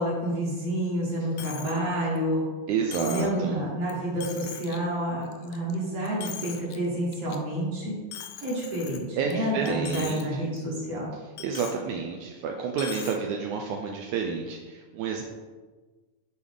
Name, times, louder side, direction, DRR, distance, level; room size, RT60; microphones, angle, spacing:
voice 1, 0.0-2.4 3.1-8.0 8.4-11.1, right 1 dB, 55° right, -5 dB, 2.1 m, -29 dB
Coin (dropping), 1.4-1.8 2.2-2.3 2.9-3.4 3.9-4.0 4.2-4.8 5.2-5.7 6.0-6.8 7.1-7.4 8.1-9.3 9.7-10.2 10.6-10.7 11.4-11.8 12.7-13.2, left 10 dB, 85° left, 2.2 m, -40 dB
voice 2, 2.7-3.6 9.2-10.4 11.4-15.2, right 6 dB, 80° right, 1 dB, 1.9 m, -30 dB
7.7 x 4.8 x 3.6 m, 1.3 s
omnidirectional pair, 3.7 m